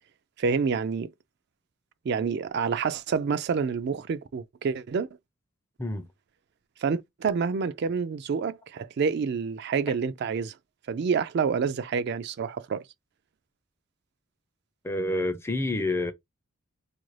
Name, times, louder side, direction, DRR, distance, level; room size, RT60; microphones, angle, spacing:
voice 1, 0.4-1.1 2.1-5.1 6.8-10.5 10.9-12.8, right 5 dB, 50° right, 0.3 m, -28 dB
voice 2, 14.8-16.1, left 2 dB, 10° left, 0.4 m, -28 dB
4.4 x 2.5 x 3.1 m
head